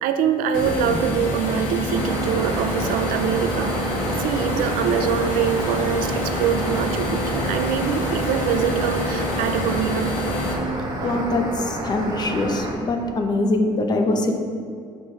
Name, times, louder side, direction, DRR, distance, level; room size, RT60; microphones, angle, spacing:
voice 1, 0.0-10.2 11.0-11.4, right 8 dB, 80° right, 9 dB, 0.5 m, -24 dB
sound 1, 0.5-10.5, left 1 dB, 70° left, 1.5 m, -27 dB
sound 2, 1.9-12.7, right 1 dB, 30° right, 1.2 m, -30 dB
voice 2, 10.7-14.4, left 2 dB, 30° left, 3 dB, 0.8 m, -23 dB
7.4 x 6.5 x 3.3 m, 2.3 s
cardioid pair, 140°, 14 cm